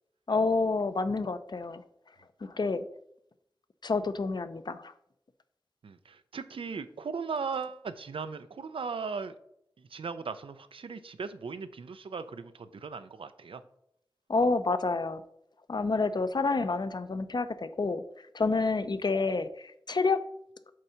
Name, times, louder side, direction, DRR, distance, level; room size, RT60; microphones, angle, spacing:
voice 1, 0.3-1.8 2.4-2.9 3.8-4.9 14.3-15.2 15.7-18.0 18.3-20.2, left 3 dB, 55° left, 12 dB, 0.5 m, -28 dB
voice 2, 5.8-9.3 9.8-13.6, right 5 dB, 90° right, 11 dB, 0.4 m, -38 dB
7.5 x 2.7 x 5.6 m, 0.76 s
cardioid pair, 45°, 9 cm